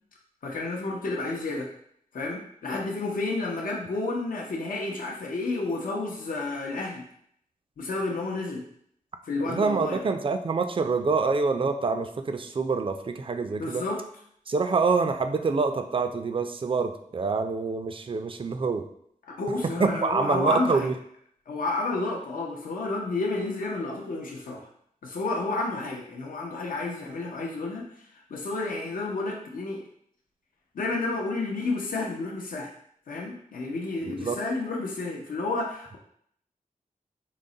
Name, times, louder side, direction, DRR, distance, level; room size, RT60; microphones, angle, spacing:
voice 1, 0.4-1.7 2.1-7.0 7.8-8.6 9.3-10.0 13.6-14.0 19.4-20.9 21.5-24.7 25.0-27.9 28.3-29.8 30.7-32.7 33.1-36.0, left 3 dB, 80° left, -1 dB, 0.6 m, -30 dB
voice 2, 9.5-13.8 14.5-18.9 19.6-20.9 34.0-34.4, right 4 dB, 40° right, 7 dB, 0.4 m, -26 dB
3.9 x 2.1 x 3.8 m, 0.68 s
cardioid pair, 60°, 14 cm